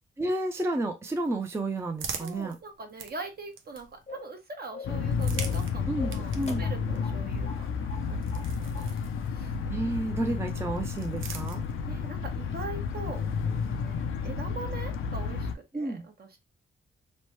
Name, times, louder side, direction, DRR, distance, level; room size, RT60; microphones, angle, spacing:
voice 1, 0.2-2.6 5.9-6.7 9.7-11.6 15.7-16.0, right 2 dB, 10° right, 0.5 m, -31 dB
sound 1, 1.2-4.2 5.0-9.6 10.6-12.1, right 6 dB, 75° right, 0.5 m, -44 dB
voice 2, 2.2-8.5 8.7-8.9 9.3-9.6 11.9-16.3, right 3 dB, 50° right, 0.9 m, -42 dB
sound 2, 4.1-4.4 4.7-5.0 5.4-5.7 6.0-7.2 7.5-7.6 7.9-8.5 8.7-8.9, left 4 dB, 30° left, 0.6 m, -43 dB
sound 3, 4.8-15.5, left 5 dB, 80° left, 0.5 m, -31 dB
3.1 x 2.1 x 3.1 m
cardioid pair, 70°, 21 cm